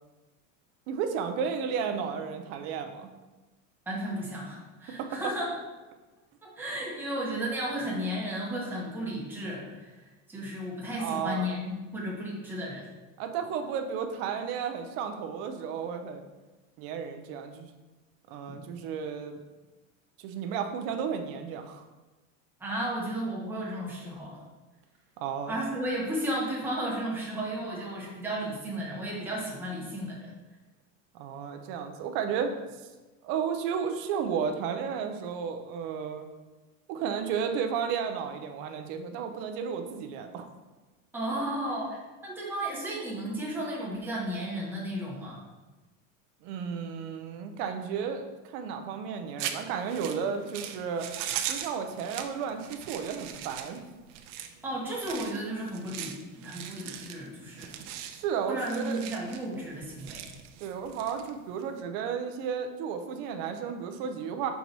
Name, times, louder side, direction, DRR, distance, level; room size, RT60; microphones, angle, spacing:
voice 1, 0.9-3.1 5.0-5.2 11.0-11.6 13.2-16.2 16.8-17.7 18.3-19.4 20.2-21.9 25.2-25.6 31.1-32.5 33.2-36.3 36.9-40.5 46.4-48.3 48.5-51.1 51.5-53.8 58.1-59.0 60.6-64.5, right 7 dB, 30° right, 6 dB, 0.4 m, -33 dB
voice 2, 3.9-5.5 6.4-12.9 18.5-18.6 22.6-24.4 25.5-30.3 41.1-45.4 54.6-57.7 58.5-60.3, right 1 dB, 5° right, -5 dB, 1.0 m, -34 dB
sound 1, 49.4-61.7, right 10 dB, 70° right, 0.7 m, -40 dB
5.8 x 4.6 x 4.0 m, 1.2 s
cardioid pair, 175°, 38 cm